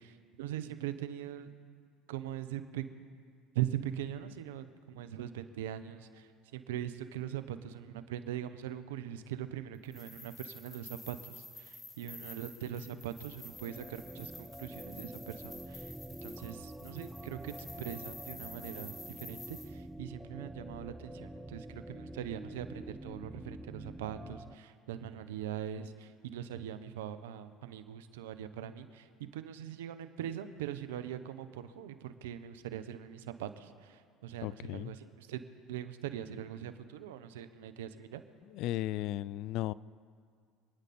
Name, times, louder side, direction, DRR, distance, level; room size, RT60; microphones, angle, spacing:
voice 1, 0.4-1.5 2.1-2.8 3.5-6.2 6.5-15.9 16.2-19.6 20.0-34.0 34.2-35.4 35.7-38.2, right 11 dB, 85° right, 11 dB, 0.9 m, -41 dB
sound 1, 9.8-19.7, left 2 dB, 25° left, 3.3 m, -50 dB
sound 2, 13.1-24.5, right 1 dB, ahead, 0.6 m, -47 dB
voice 2, 34.4-34.9 38.5-39.7, left 15 dB, 65° left, 21 dB, 0.3 m, -35 dB
27.0 x 9.9 x 4.3 m, 2.2 s
hypercardioid pair, 85°, 0 cm